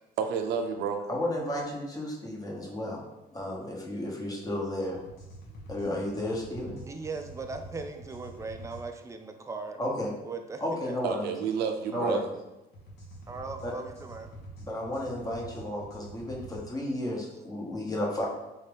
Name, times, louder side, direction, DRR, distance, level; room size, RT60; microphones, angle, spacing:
voice 1, 0.2-1.0 11.0-12.3, right 6 dB, 75° right, 5 dB, 0.5 m, -30 dB
voice 2, 1.1-3.0 3.3-5.0 5.7-6.8 9.8-10.1 10.6-11.3 11.9-12.3 13.6-13.7 14.6-18.3, left 1 dB, 20° left, -2 dB, 0.9 m, -33 dB
sound 1, 4.9-8.8 12.7-16.6, right 1 dB, 75° left, 1.0 m, -46 dB
voice 3, 6.9-9.8 10.2-11.0 11.9-12.2 13.3-14.3, right 4 dB, 20° right, 6 dB, 0.4 m, -39 dB
3.5 x 2.8 x 3.4 m, 0.98 s
cardioid pair, 110°, 17 cm